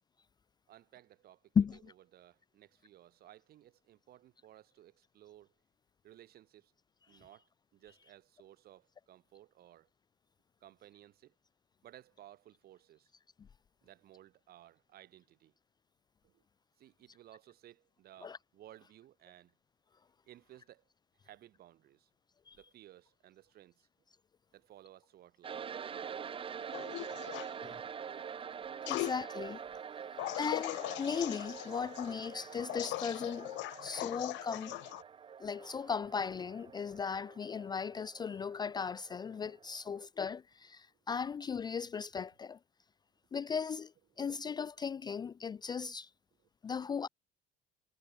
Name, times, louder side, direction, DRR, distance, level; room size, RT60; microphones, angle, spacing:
voice 1, 0.7-1.4 1.7-1.8 2.1-5.5 6.0-6.7 7.1-7.5 7.7-9.9 10.6-11.3 11.8-13.1 13.8-15.5 16.2-16.4 16.8-19.5 20.3-20.8 21.2-22.1 22.5-23.9 24.5-25.6 30.0-30.4 39.9-40.0 44.2-44.3 45.6-45.7, right 13 dB, 55° right, 7.1 m, -58 dB
voice 2, 1.6-1.9 7.1-7.2 18.2-18.4 22.5-22.6 27.6-27.8 28.9-29.6 30.4-33.5 33.8-34.8 35.4-42.6 43.3-46.1 46.6-47.1, left 6 dB, 20° left, 0.5 m, -37 dB
sound 1, 25.4-40.0, right 7 dB, 30° right, 1.5 m, -46 dB
sound 2, 26.7-27.5 28.9-29.2 30.2-35.0, left 20 dB, 70° left, 0.8 m, -40 dB
cardioid pair, 160°, 19 cm